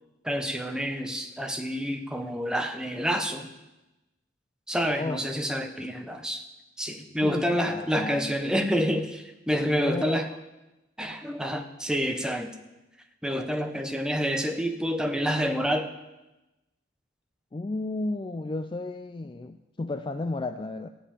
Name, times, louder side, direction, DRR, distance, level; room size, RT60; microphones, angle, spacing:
voice 1, 0.2-3.5 4.7-6.4 6.8-10.3 11.0-12.5 13.2-15.9, equal, 5° right, 5 dB, 0.8 m, -28 dB
voice 2, 5.0-5.4 7.2-8.4 9.8-10.4 13.7-13.8 17.5-20.9, left 2 dB, 25° left, 8 dB, 0.4 m, -33 dB
14.5 x 5.5 x 8.5 m, 1.0 s
head